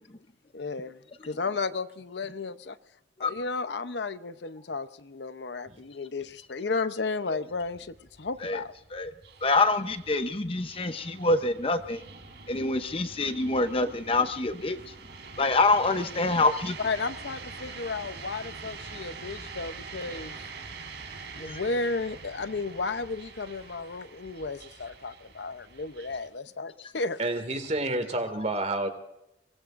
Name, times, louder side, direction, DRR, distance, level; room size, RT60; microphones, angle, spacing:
voice 1, 0.5-2.8 3.2-8.7 16.8-20.4 21.4-27.2, left 3 dB, 75° left, 0.8 m, -33 dB
sound 1, 7.3-26.3, right 4 dB, 75° right, 3.8 m, -45 dB
voice 2, 9.4-12.0 12.5-14.8 15.4-16.8 21.4-21.6, left 3 dB, 30° left, 0.8 m, -26 dB
voice 3, 27.2-28.9, right 2 dB, 40° right, 2.3 m, -29 dB
24.0 x 19.5 x 2.6 m
head